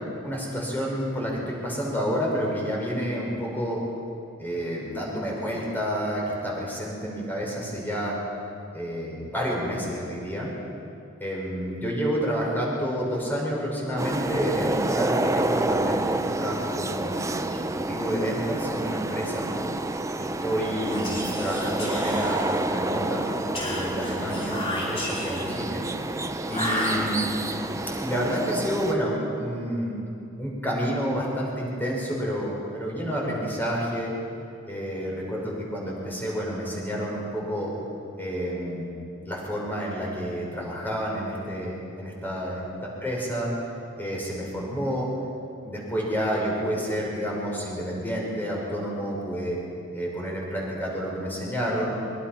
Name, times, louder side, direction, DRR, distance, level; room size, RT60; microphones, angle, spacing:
voice 1, 0.2-3.8 4.4-8.2 8.7-10.5 11.2-17.1 17.5-19.5 20.2-23.3 23.5-25.8 26.5-27.3 28.0-30.0 30.4-34.1 34.7-37.7 38.2-38.9 39.3-42.7 43.0-43.5 44.0-45.1 45.6-49.6 49.9-52.0, equal, 10° left, -3 dB, 5.8 m, -29 dB
sound 1, 14.0-28.9, right 2 dB, 15° right, 0.7 m, -29 dB
Whispering, 20.8-22.8 23.5-25.6 26.5-27.5, left 1 dB, 25° left, 4.7 m, -32 dB
24.0 x 24.0 x 6.0 m, 2.6 s
head